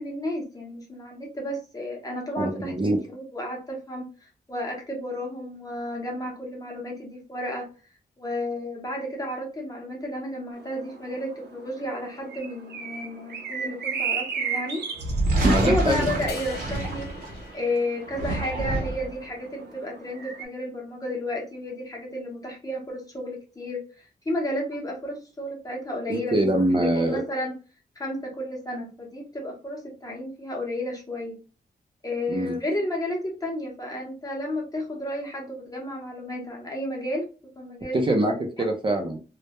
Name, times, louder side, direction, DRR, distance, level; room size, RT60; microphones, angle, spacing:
voice 1, 0.0-7.7 8.2-14.8 15.6-17.1 17.5-27.6 28.0-31.4 32.0-37.3 37.6-38.0 38.6-38.7, left 1 dB, 20° left, -1 dB, 0.7 m, -32 dB
voice 2, 2.4-3.0 15.4-16.0 26.1-27.2 32.3-32.5 37.9-39.2, right 1 dB, 30° right, 2 dB, 0.4 m, -23 dB
sound 1, 10.5-20.4, right 6 dB, 85° right, 0.6 m, -36 dB
sound 2, 15.0-17.5 18.0-19.2, right 1 dB, 55° right, 0.8 m, -27 dB
sound 3, 16.3-18.6, left 4 dB, 80° left, 0.5 m, -44 dB
2.2 x 2.0 x 2.8 m, 0.34 s
wide cardioid pair, 145°, 17 cm